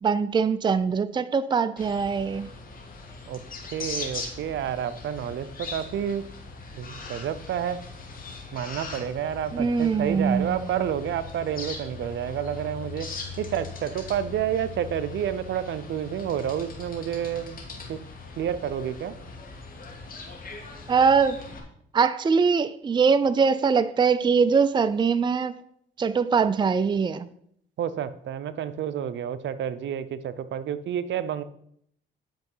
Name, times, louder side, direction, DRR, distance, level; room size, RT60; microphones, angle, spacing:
voice 1, 0.0-2.5 9.5-10.7 20.9-21.4 21.9-25.5 26.0-27.3, right 5 dB, 25° right, 0.5 m, -22 dB
sound 1, 1.8-21.6, left 4 dB, 45° left, 2.6 m, -40 dB
voice 2, 3.7-6.3 6.7-7.8 8.5-13.1 13.4-17.6 17.9-18.0 18.4-19.2 27.8-31.4, right 9 dB, 65° right, 0.7 m, -29 dB
10.5 x 5.5 x 5.6 m
cardioid pair, 90°, 20 cm